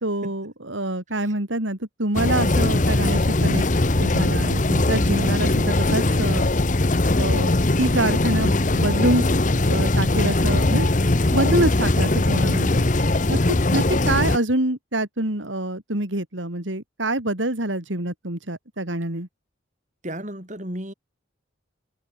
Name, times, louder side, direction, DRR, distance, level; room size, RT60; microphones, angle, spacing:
voice 1, 0.0-3.6 4.0-6.5 7.2-9.2 9.6-10.9 11.1-12.8 13.3-19.3, right 1 dB, 80° right, 3.7 m, -26 dB
sound 1, 2.1-14.4, left 2 dB, 40° left, 1.0 m, -20 dB
voice 2, 20.0-20.9, right 1 dB, 40° right, 7.2 m, -33 dB
head